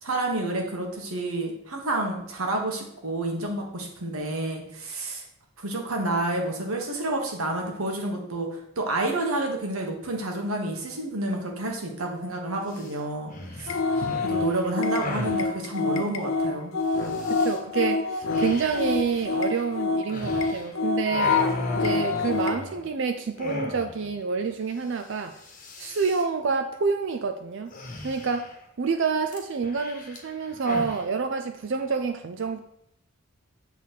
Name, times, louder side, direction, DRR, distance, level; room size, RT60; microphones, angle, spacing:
voice 1, 0.0-5.2 5.6-16.7, right 2 dB, 85° right, 2 dB, 1.4 m, -29 dB
sound 1, 12.7-12.9 13.3-15.4 17.0-17.6 18.3-20.7 21.0-23.0 23.4-24.1 24.4-24.5 24.8-25.1 25.3-26.2 27.7-28.6 29.3-31.0, left 2 dB, 35° left, 1.1 m, -37 dB
sound 2, 13.7-22.7, left 3 dB, 65° left, 0.6 m, -27 dB
voice 2, 17.3-21.4 21.7-25.4 25.8-27.7 28.0-28.5 28.8-32.6, right 5 dB, 60° right, 6 dB, 0.4 m, -28 dB
7.2 x 4.1 x 4.5 m, 0.74 s
head